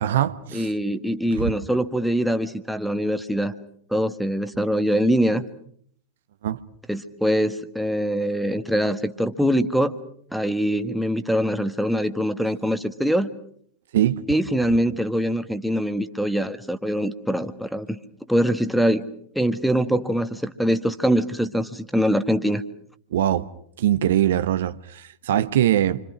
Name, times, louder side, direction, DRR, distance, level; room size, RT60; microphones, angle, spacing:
voice 1, 0.0-0.7 1.4-1.5 6.4-6.6 13.9-14.2 23.1-23.5 23.8-26.0, right 11 dB, 60° right, 1.1 m, -22 dB
voice 2, 0.5-3.5 3.9-5.4 6.9-10.0 10.3-13.3 14.3-18.0 18.3-19.0 19.3-22.6, equal, ahead, 1.6 m, -23 dB
28.5 x 26.0 x 6.2 m
figure-of-eight pair, 90°, 0 cm